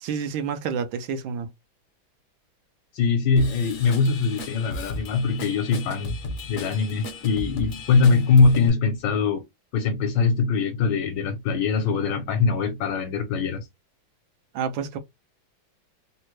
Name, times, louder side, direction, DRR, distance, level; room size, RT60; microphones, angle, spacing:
voice 1, 0.0-1.5 14.5-15.0, right 6 dB, 85° right, 1.4 m, -29 dB
voice 2, 2.9-6.2 6.5-9.4 9.7-13.7, left 4 dB, 70° left, 1.3 m, -22 dB
Drum kit / Drum, 3.4-8.7, left 2 dB, 55° left, 1.0 m, -35 dB
3.7 x 2.1 x 3.0 m
omnidirectional pair, 2.1 m